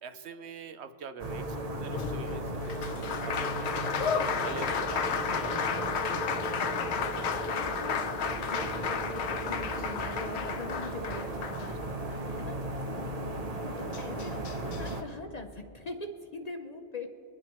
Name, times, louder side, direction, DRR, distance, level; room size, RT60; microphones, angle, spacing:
voice 1, 0.0-5.8, right 6 dB, 70° right, 9 dB, 0.9 m, -45 dB
sound 1, 1.2-15.0, right 2 dB, 40° right, 0.7 m, -36 dB
Applause, 1.9-12.2 13.6-13.7 13.9-14.9, left 7 dB, 70° left, 0.9 m, -33 dB
voice 2, 7.0-12.6 13.8-17.1, left 3 dB, 45° left, 5 dB, 0.6 m, -43 dB
23.5 x 10.5 x 3.0 m, 2.8 s
omnidirectional pair, 1.2 m